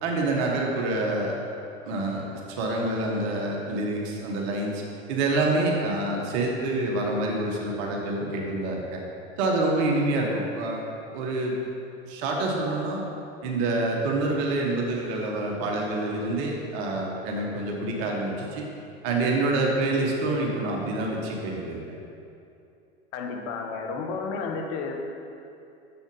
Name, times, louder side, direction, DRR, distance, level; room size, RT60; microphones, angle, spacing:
voice 1, 0.0-1.3 1.8-2.2 2.5-4.8 5.1-9.0 9.4-10.8 11.1-11.5 12.0-13.0 13.4-18.6 19.0-21.8, right 2 dB, 55° right, 0 dB, 1.5 m, -27 dB
voice 2, 23.1-25.0, left 4 dB, 45° left, 3 dB, 1.1 m, -32 dB
7.2 x 6.8 x 5.5 m, 2.6 s
figure-of-eight pair, 85°, 33 cm